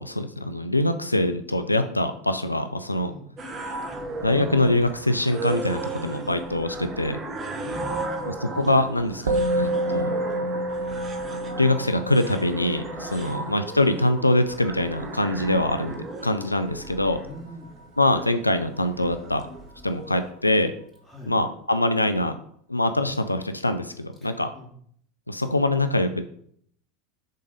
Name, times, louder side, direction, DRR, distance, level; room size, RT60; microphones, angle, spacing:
voice 1, 0.0-3.1 4.2-7.2 8.3-10.1 11.6-17.2 18.0-19.4 19.8-20.7 21.3-22.3 22.7-24.5 25.3-26.2, left 1 dB, 90° left, 9 dB, 0.4 m, -24 dB
sound 1, 3.4-20.3, right 2 dB, 30° right, 1.0 m, -36 dB
voice 2, 7.6-8.3 13.1-13.4 17.2-17.7 21.1-21.3 24.2-24.7, equal, 5° right, -4 dB, 2.8 m, -42 dB
Musical instrument, 9.3-18.8, right 1 dB, 70° right, 0.6 m, -31 dB
6.5 x 3.9 x 5.0 m, 0.63 s
figure-of-eight pair, 75°, 0 cm